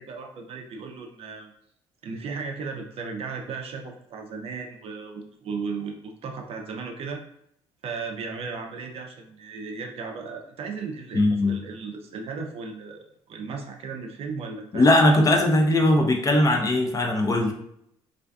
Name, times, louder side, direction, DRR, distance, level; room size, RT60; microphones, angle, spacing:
voice 1, 0.0-1.5 2.0-7.2 7.8-15.1 15.8-15.9, right 5 dB, 50° right, 3 dB, 0.5 m, -36 dB
voice 2, 11.1-11.6 14.7-17.5, left 1 dB, 30° left, 3 dB, 0.4 m, -19 dB
2.4 x 2.4 x 2.2 m, 0.73 s
supercardioid pair, 90°, 12 cm